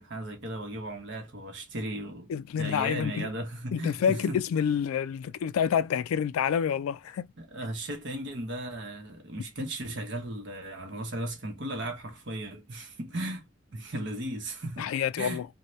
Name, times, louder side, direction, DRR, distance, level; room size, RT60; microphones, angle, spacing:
voice 1, 0.0-2.3 2.6-4.4 7.4-15.4, right 1 dB, 55° right, 0.9 m, -36 dB
voice 2, 2.3-3.3 3.7-7.3 14.8-15.5, left 8 dB, 90° left, 0.3 m, -28 dB
2.7 x 2.2 x 3.1 m
head